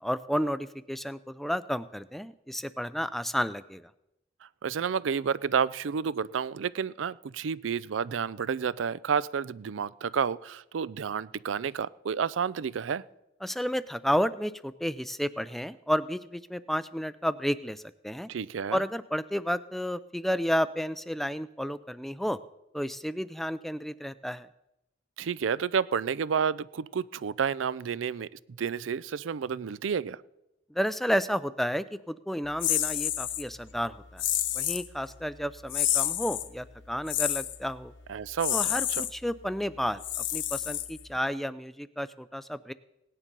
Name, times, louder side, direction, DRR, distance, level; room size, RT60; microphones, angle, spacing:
voice 1, 0.0-3.9 13.4-18.3 18.7-22.4 22.7-24.5 30.7-34.2 34.5-37.9 38.5-40.0 40.3-42.7, equal, ahead, 15 dB, 0.4 m, -31 dB
voice 2, 4.6-13.0 18.3-18.8 25.2-28.3 28.6-30.2 38.1-39.0, right 6 dB, 90° right, 19 dB, 0.4 m, -30 dB
sound 1, 32.6-33.4 34.2-34.9 35.7-36.5 37.1-37.6 38.4-39.1 40.0-41.2, left 12 dB, 75° left, 1.0 m, -29 dB
17.5 x 9.9 x 5.3 m, 0.92 s
head